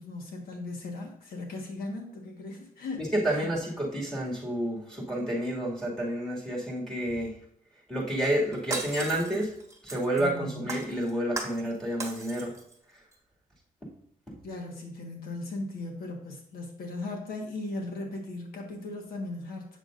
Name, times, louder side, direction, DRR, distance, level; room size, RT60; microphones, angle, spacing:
voice 1, 0.0-3.5 10.2-10.8 14.4-19.8, left 2 dB, 90° left, 1 dB, 1.4 m, -38 dB
voice 2, 3.0-7.3 7.9-9.5 9.8-12.5 14.3-14.4, right 1 dB, 5° left, -3 dB, 2.2 m, -30 dB
Shatter, 8.2-10.3 10.7-11.7 12.0-12.7 13.1-13.2, right 3 dB, 20° right, 1.2 m, -37 dB
7.4 x 6.4 x 2.5 m, 0.69 s
cardioid pair, 115°, 15 cm